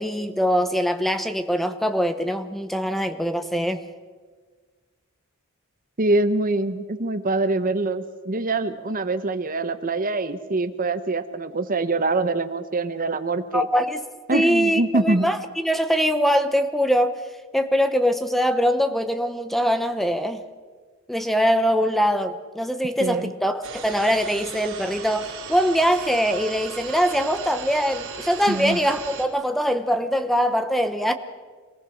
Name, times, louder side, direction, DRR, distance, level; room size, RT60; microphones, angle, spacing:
voice 1, 0.0-3.8 13.5-14.0 14.3-17.2 17.5-20.4 21.1-31.1, equal, ahead, 9 dB, 0.9 m, -22 dB
voice 2, 6.0-13.7 14.3-15.3 23.0-23.3 28.5-28.8, right 2 dB, 40° right, 11 dB, 1.0 m, -24 dB
sound 1, 23.6-29.3, right 6 dB, 65° right, 3.6 m, -37 dB
25.5 x 19.0 x 6.4 m, 1.5 s
head